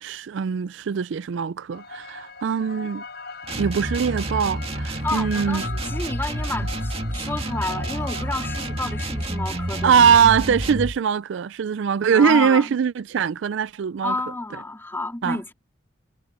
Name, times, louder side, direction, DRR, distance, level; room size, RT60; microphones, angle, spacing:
voice 1, 0.0-3.0 3.6-5.6 9.8-14.2 15.2-15.4, right 7 dB, 65° right, 0.4 m, -21 dB
sound 1, 1.7-10.2, left 4 dB, 50° left, 6.8 m, -40 dB
sound 2, 3.4-11.0, right 1 dB, 30° right, 2.1 m, -29 dB
voice 2, 5.0-10.1 12.1-12.7 14.0-15.5, left 2 dB, 10° left, 2.8 m, -30 dB
head